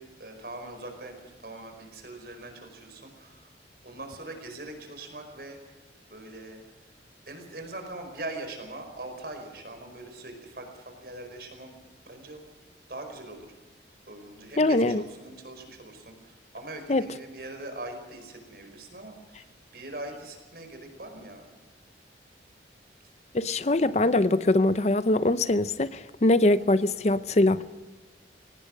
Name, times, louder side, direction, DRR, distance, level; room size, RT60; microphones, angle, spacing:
voice 1, 0.0-3.5 3.8-5.7 6.1-6.6 7.3-11.7 12.0-12.5 12.9-13.5 14.1-21.5, right 2 dB, 55° right, 5.0 m, -42 dB
voice 2, 14.6-15.0 16.9-17.0 23.3-27.6, left 2 dB, 35° left, 0.6 m, -22 dB
22.0 x 18.5 x 6.4 m
head